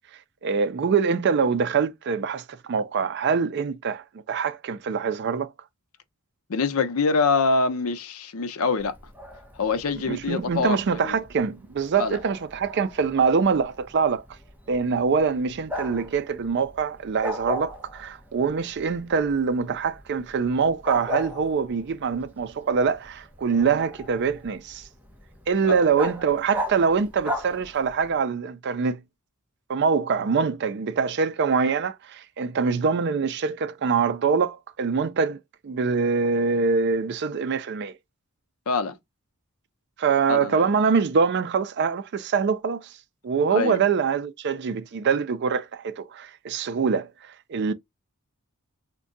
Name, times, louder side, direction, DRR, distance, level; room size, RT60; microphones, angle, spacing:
voice 1, 0.4-5.5 10.0-14.2 14.7-24.8 25.5-29.0 29.7-37.9 40.0-42.9 43.2-47.7, right 5 dB, 50° right, 0.4 m, -24 dB
voice 2, 6.5-8.9 9.5-11.2 12.0-12.2 25.6-25.8 38.7-39.0 40.3-40.6 43.5-43.8, left 4 dB, 80° left, 0.6 m, -25 dB
Bark, 8.8-28.2, equal, 10° right, 0.6 m, -38 dB
3.6 x 2.2 x 2.5 m
head